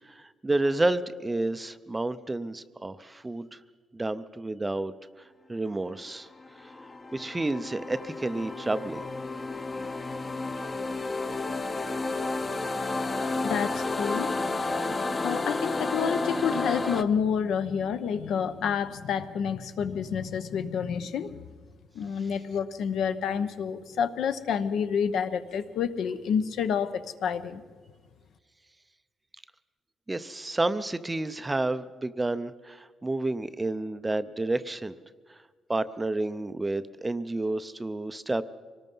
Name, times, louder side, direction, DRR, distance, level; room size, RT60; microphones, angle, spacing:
voice 1, 0.1-3.6 3.9-4.9 5.5-6.3 6.6-6.7 7.1-9.0 30.1-35.0 35.3-35.4 35.7-38.4, right 2 dB, 15° right, 13 dB, 0.5 m, -30 dB
sound 1, 6.3-17.0, left 3 dB, 25° left, 0.8 m, -31 dB
voice 2, 13.4-14.3 15.2-21.4 21.9-27.6, left 7 dB, 70° left, 11 dB, 0.9 m, -29 dB
25.0 x 19.0 x 5.4 m, 1.5 s
cardioid pair, 155°, 0 cm